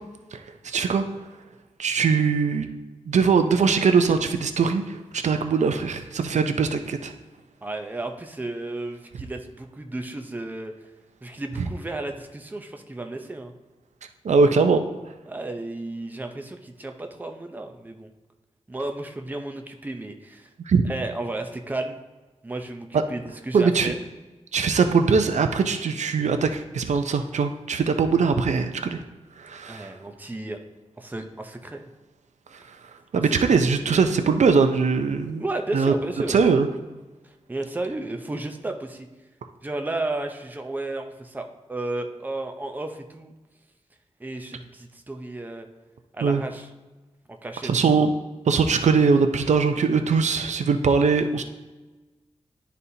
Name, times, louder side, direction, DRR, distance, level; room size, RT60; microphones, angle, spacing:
voice 1, 0.3-1.1 1.8-2.7 3.1-7.1 14.2-14.8 20.7-20.8 22.9-23.0 23.5-23.9 24.5-29.0 29.4-29.9 33.1-35.4 35.7-35.9 36.3-36.7 46.2-46.4 47.6-48.1 48.5-51.4, right 5 dB, 75° right, 7 dB, 0.5 m, -21 dB
voice 2, 7.6-10.7 11.2-13.5 15.3-18.1 18.7-20.5 20.9-22.0 22.4-24.0 29.7-30.6 31.0-31.8 33.2-33.6 35.4-36.4 37.2-39.1 39.6-43.3 44.2-45.7 46.1-46.7 47.4-47.7, right 2 dB, 15° right, 5 dB, 0.5 m, -33 dB
11.0 x 4.1 x 2.7 m, 1.2 s
wide cardioid pair, 125°, 12 cm